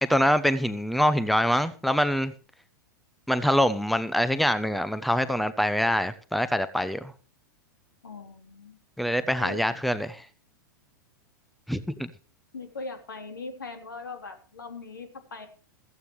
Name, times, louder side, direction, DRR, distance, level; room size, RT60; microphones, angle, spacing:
voice 1, 0.0-2.3 3.3-7.1 9.0-10.2 11.7-12.1, equal, ahead, 0.9 m, -24 dB
voice 2, 8.0-8.8 9.4-9.6 12.5-15.5, left 3 dB, 80° left, 3.3 m, -40 dB
16.5 x 14.5 x 3.2 m
figure-of-eight pair, 100°, 11 cm